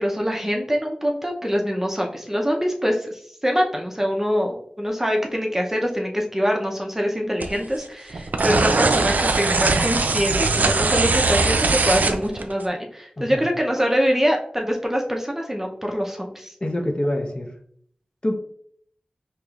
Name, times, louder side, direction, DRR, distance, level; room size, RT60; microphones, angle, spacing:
voice 1, 0.0-16.5, equal, 15° right, 1 dB, 0.6 m, -24 dB
sound 1, 7.4-7.8 8.1-12.6, right 3 dB, 85° right, 0.3 m, -21 dB
voice 2, 13.2-13.5 16.6-17.5 18.2-18.3, left 1 dB, 35° left, 2 dB, 0.7 m, -25 dB
4.7 x 2.9 x 2.4 m, 0.63 s
wide cardioid pair, 65°, 3 cm